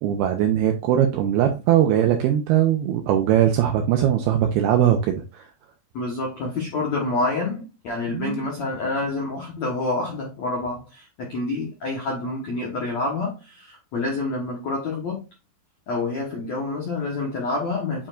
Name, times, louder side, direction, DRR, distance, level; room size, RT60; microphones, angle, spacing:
voice 1, 0.0-5.4 8.1-8.4, right 10 dB, 85° right, 2.3 m, -20 dB
voice 2, 5.9-15.2 15.9-18.1, left 3 dB, 75° left, 1.6 m, -28 dB
9.5 x 4.4 x 2.5 m
omnidirectional pair, 5.3 m